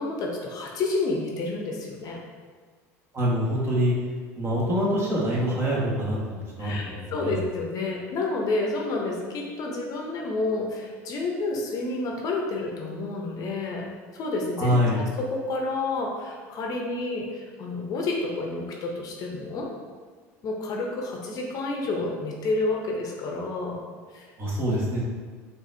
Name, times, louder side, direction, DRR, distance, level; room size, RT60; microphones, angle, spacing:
voice 1, 0.0-2.2 6.6-13.8 14.1-19.7 20.4-23.8 24.1-24.3, left 2 dB, 50° left, 0 dB, 0.7 m, -29 dB
voice 2, 3.1-3.9 4.3-7.4 14.6-15.0 24.4-25.0, equal, 30° right, -5 dB, 1.3 m, -25 dB
4.8 x 2.6 x 2.7 m, 1.5 s
hypercardioid pair, 85°, 8 cm